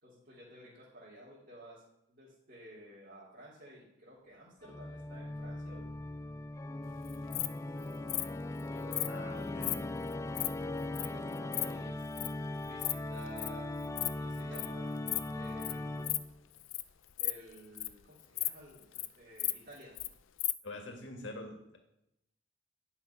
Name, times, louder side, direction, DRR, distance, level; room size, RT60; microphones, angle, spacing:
voice 1, 0.0-1.8 2.1-5.9 8.7-9.7 10.9-12.0 12.6-15.0 15.3-16.3 17.2-19.9, right 1 dB, 50° right, -8 dB, 3.0 m, -53 dB
Organ, 4.6-16.5, left 2 dB, 15° left, 0.3 m, -39 dB
Insect, 7.1-7.5 8.1-8.3 8.9-9.1 9.6-9.8 10.1-10.5 11.0-11.1 11.3-11.7 12.2-12.3 12.7-12.9 13.2-13.5 13.8-14.1 14.3-14.7 15.1-15.3 15.6-15.7 16.0-16.2 16.6-16.8 17.1-18.0 18.4-18.5 18.8-19.1 19.4-20.1 20.4-20.5, left 17 dB, 85° left, 0.5 m, -34 dB
voice 2, 9.1-9.8 14.5-14.6 20.6-21.8, left 2 dB, 65° left, 3 dB, 2.0 m, -45 dB
10.5 x 5.7 x 5.7 m, 0.83 s
head